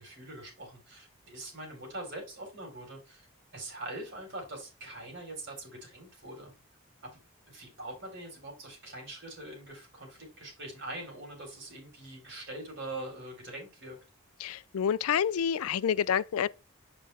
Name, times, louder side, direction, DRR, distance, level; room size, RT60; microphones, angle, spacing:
voice 1, 0.0-3.2 3.5-6.5 7.0-7.2 7.5-14.0, right 1 dB, 55° right, 4.0 m, -43 dB
voice 2, 14.4-16.5, left 8 dB, 90° left, 0.4 m, -28 dB
7.5 x 5.5 x 3.4 m
head